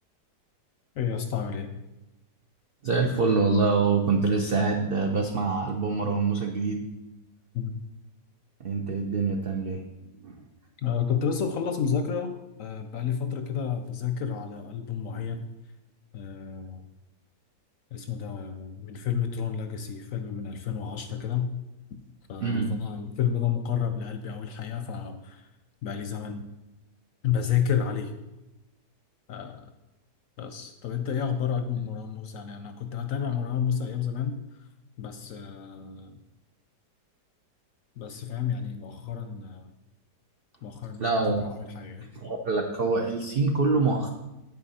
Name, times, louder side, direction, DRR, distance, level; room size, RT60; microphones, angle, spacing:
voice 1, 1.0-1.7 7.5-7.8 10.8-12.3 12.6-15.5 16.1-16.8 17.9-21.5 21.9-22.0 22.3-25.5 25.8-26.5 27.2-28.1 29.3-29.7 30.4-34.4 35.0-36.2 38.0-39.7 40.6-41.1 41.4-42.1, left 7 dB, 65° left, 7 dB, 0.8 m, -30 dB
voice 2, 2.8-6.9 8.6-10.4 22.4-22.7 41.0-41.5 42.0-44.1, right 4 dB, 90° right, 3 dB, 0.5 m, -25 dB
8.7 x 6.6 x 4.1 m, 1.0 s
omnidirectional pair, 1.8 m